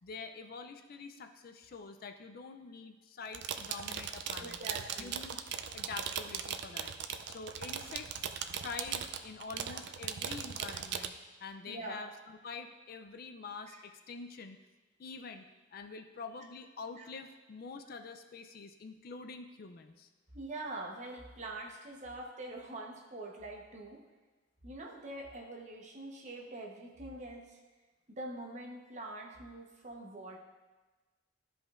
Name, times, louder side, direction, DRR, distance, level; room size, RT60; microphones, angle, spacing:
voice 1, 0.0-4.6 5.0-5.4 5.7-6.9 7.3-8.1 8.6-11.2 11.4-14.6 15.0-15.5 15.7-20.1, left 4 dB, 50° left, 7 dB, 0.4 m, -46 dB
sound 1, 3.3-11.1, right 8 dB, 60° right, 0.4 m, -39 dB
voice 2, 4.4-5.2 11.7-12.0 13.7-13.8 17.0-17.1 20.3-24.0 24.6-27.6 28.1-30.4, right 2 dB, 40° right, -1 dB, 1.0 m, -44 dB
13.0 x 5.1 x 2.5 m, 1.2 s
head